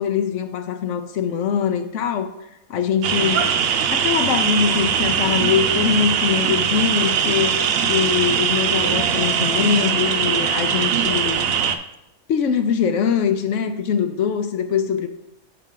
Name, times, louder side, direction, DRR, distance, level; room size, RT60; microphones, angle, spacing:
voice 1, 0.0-2.3 2.7-3.5 3.9-11.5 12.3-15.1, left 7 dB, 65° left, 9 dB, 0.8 m, -22 dB
sound 1, 3.0-11.8, right 7 dB, 90° right, 0.5 m, -21 dB
7.4 x 5.7 x 3.8 m, 0.89 s
omnidirectional pair, 1.6 m